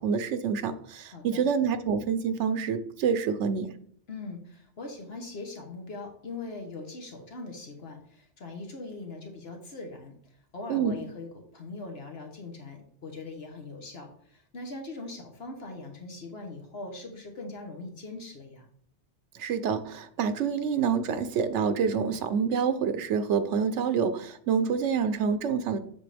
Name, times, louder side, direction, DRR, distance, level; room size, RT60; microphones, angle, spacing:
voice 1, 0.0-3.7 10.7-11.0 19.3-25.8, right 6 dB, 85° right, 11 dB, 1.0 m, -27 dB
voice 2, 1.1-1.5 4.1-11.3 11.5-18.6, left 3 dB, 60° left, 3 dB, 1.4 m, -41 dB
7.7 x 6.9 x 3.4 m, 0.62 s
omnidirectional pair, 1.2 m